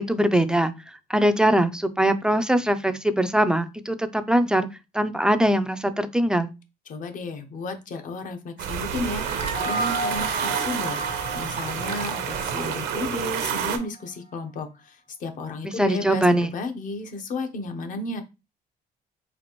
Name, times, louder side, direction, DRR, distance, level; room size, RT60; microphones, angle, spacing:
voice 1, 0.0-4.7 4.9-6.5 15.6-16.5, right 1 dB, 5° right, 9 dB, 0.3 m, -22 dB
voice 2, 6.9-11.0 11.3-18.2, left 3 dB, 50° left, 7 dB, 0.8 m, -33 dB
sound 1, 8.6-13.8, right 8 dB, 80° right, 0.7 m, -29 dB
sound 2, 9.2-13.8, right 2 dB, 70° left, 1.5 m, -33 dB
4.2 x 2.5 x 2.9 m, 0.27 s
cardioid pair, 110°, 17 cm